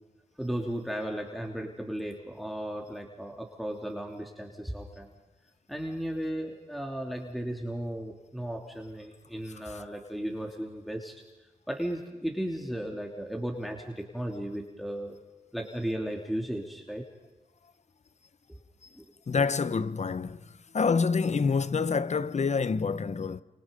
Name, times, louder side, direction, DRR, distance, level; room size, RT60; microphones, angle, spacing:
voice 1, 0.4-5.1 5.7-11.2 11.7-15.2 15.5-17.1 18.5-18.6 18.9-19.1, right 1 dB, ahead, 3.2 m, -35 dB
voice 2, 19.3-20.4 20.7-23.4, left 5 dB, 55° left, 1.0 m, -27 dB
29.0 x 27.5 x 5.4 m
cardioid pair, 65°, 14 cm